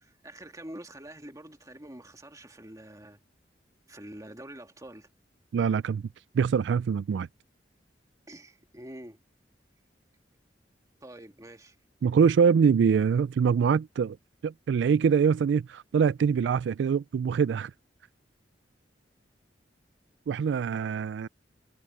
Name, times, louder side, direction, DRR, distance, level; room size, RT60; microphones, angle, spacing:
voice 1, 0.0-3.2 3.9-5.1 8.3-9.2 11.0-11.8, right 1 dB, 20° right, 2.3 m, -46 dB
voice 2, 5.5-6.0 6.3-7.3 12.0-14.2 14.4-17.7 20.3-21.3, right 6 dB, 70° right, 0.3 m, -24 dB
head